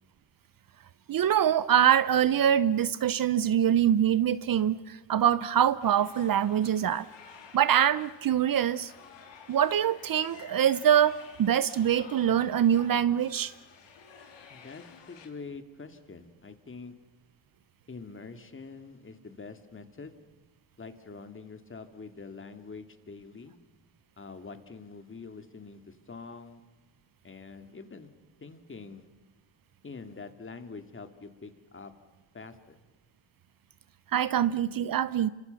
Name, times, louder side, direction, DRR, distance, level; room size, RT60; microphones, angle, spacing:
voice 1, 1.1-7.1 7.5-8.9 9.5-13.5 34.1-35.3, right 10 dB, 50° right, 16 dB, 0.8 m, -24 dB
sound 1, 5.8-15.3, left 7 dB, 75° left, 3.9 m, -52 dB
voice 2, 14.5-16.9 17.9-20.2 20.8-23.6 24.2-26.6 27.2-28.1 28.4-29.1 29.8-31.9 32.3-32.8, left 4 dB, 25° left, 8 dB, 2.4 m, -45 dB
27.5 x 25.5 x 7.0 m, 1.1 s
cardioid pair, 105°, 44 cm